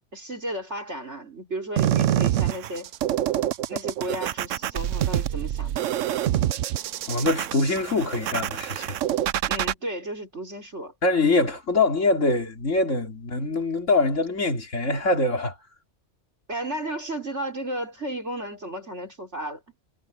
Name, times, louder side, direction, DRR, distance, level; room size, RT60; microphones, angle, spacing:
voice 1, 0.1-2.9 3.7-5.8 9.5-10.9 16.5-19.6, right 1 dB, 65° right, 5.2 m, -33 dB
sound 1, 1.8-9.7, right 12 dB, 85° right, 1.0 m, -26 dB
voice 2, 7.1-9.0 11.0-15.6, left 3 dB, 80° left, 3.4 m, -23 dB
omnidirectional pair, 1.3 m